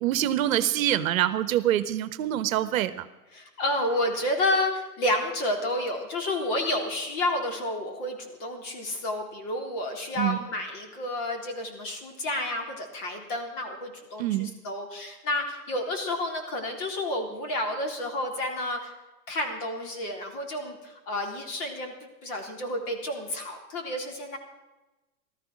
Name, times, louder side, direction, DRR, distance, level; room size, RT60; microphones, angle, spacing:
voice 1, 0.0-3.1 10.2-10.4 14.2-14.5, right 12 dB, 55° right, 14 dB, 1.0 m, -25 dB
voice 2, 3.3-18.9 19.3-24.4, left 1 dB, 40° left, 3 dB, 3.8 m, -30 dB
15.0 x 13.5 x 6.2 m, 1.1 s
hypercardioid pair, 125°, 47 cm